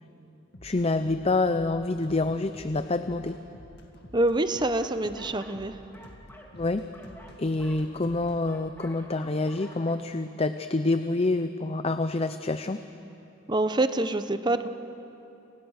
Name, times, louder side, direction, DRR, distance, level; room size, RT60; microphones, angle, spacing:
sound 1, 0.5-8.4, left 1 dB, 55° left, 2.2 m, -50 dB
voice 1, 0.6-3.4 6.6-6.8 7.4-12.8, left 2 dB, 30° left, 10 dB, 0.6 m, -27 dB
voice 2, 4.1-5.8 13.5-14.7, right 2 dB, 20° right, 10 dB, 0.9 m, -26 dB
sound 2, 4.6-5.6 5.9-9.9, left 1 dB, 10° left, 2.5 m, -50 dB
29.5 x 28.5 x 6.5 m, 2.9 s
head